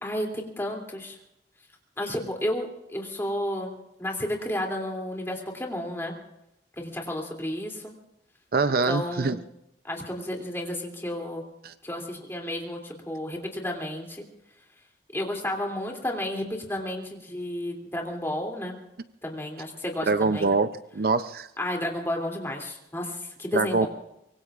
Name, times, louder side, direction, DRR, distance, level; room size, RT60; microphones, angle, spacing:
voice 1, 0.0-1.2 2.0-6.1 6.8-7.9 8.8-9.4 9.8-11.4 11.8-14.2 15.1-18.8 19.2-20.5 21.6-23.9, left 1 dB, 15° left, 1 dB, 2.9 m, -32 dB
voice 2, 8.5-9.4 11.6-11.7 20.1-21.5 23.5-23.9, right 4 dB, 55° right, 12 dB, 0.5 m, -24 dB
25.0 x 22.5 x 2.5 m, 0.84 s
head